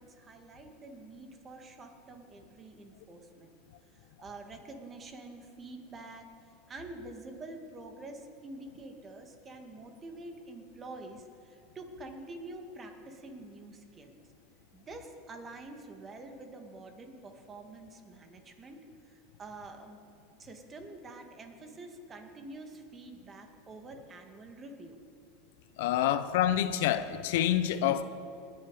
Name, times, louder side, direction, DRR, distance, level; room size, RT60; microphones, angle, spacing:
voice 1, 0.0-3.5 3.9-6.3 6.7-14.2 14.7-20.0 20.4-25.0 26.2-26.4, right 2 dB, 25° right, 5 dB, 1.9 m, -47 dB
voice 2, 25.8-28.0, left 11 dB, 70° left, 12 dB, 0.7 m, -27 dB
20.5 x 8.7 x 4.9 m, 2.6 s
hypercardioid pair, 110°, 0 cm